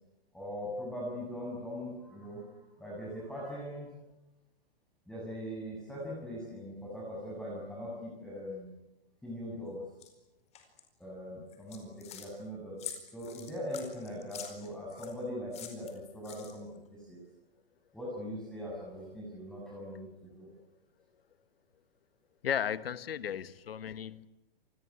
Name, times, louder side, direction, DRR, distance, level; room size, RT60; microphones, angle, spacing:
voice 1, 0.3-2.5 2.8-3.9 5.1-8.7 9.2-9.8 11.0-12.8 13.1-17.2 17.9-20.5, equal, ahead, -4 dB, 7.0 m, -41 dB
sound 1, 10.0-10.1 10.5-10.8 11.5-12.3 12.8-15.1 15.5-16.8, left 9 dB, 20° left, 4.6 m, -45 dB
voice 2, 22.4-24.3, left 8 dB, 75° left, 16 dB, 1.4 m, -35 dB
28.0 x 20.5 x 9.7 m, 0.95 s
hypercardioid pair, 140°, 30 cm